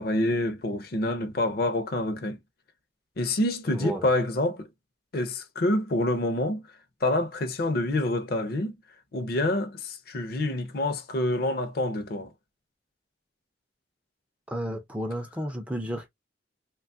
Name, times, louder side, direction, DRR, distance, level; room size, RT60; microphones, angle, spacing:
voice 1, 0.0-2.4 3.2-4.7 5.1-6.6 7.0-8.7 9.1-12.3, left 1 dB, 50° left, 0.5 m, -27 dB
voice 2, 3.7-4.1 14.5-16.1, equal, 5° right, 0.3 m, -32 dB
2.9 x 2.3 x 2.5 m
head